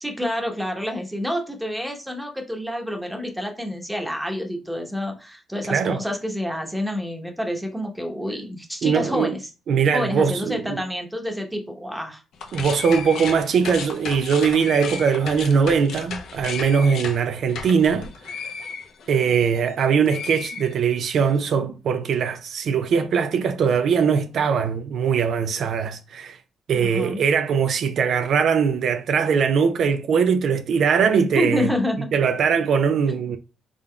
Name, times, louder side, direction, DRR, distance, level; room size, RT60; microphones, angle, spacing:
voice 1, 0.0-9.5 9.9-12.2 26.7-27.2 31.3-32.1, left 1 dB, 5° right, 0.9 m, -28 dB
voice 2, 5.7-6.0 8.8-9.3 9.7-10.8 12.5-18.1 19.1-26.4 26.7-31.7 32.1-33.4, right 6 dB, 65° right, 0.3 m, -21 dB
sound 1, 12.3-19.7 20.0-21.2, left 5 dB, 75° left, 0.6 m, -34 dB
3.6 x 3.6 x 2.2 m
cardioid pair, 90°, 0 cm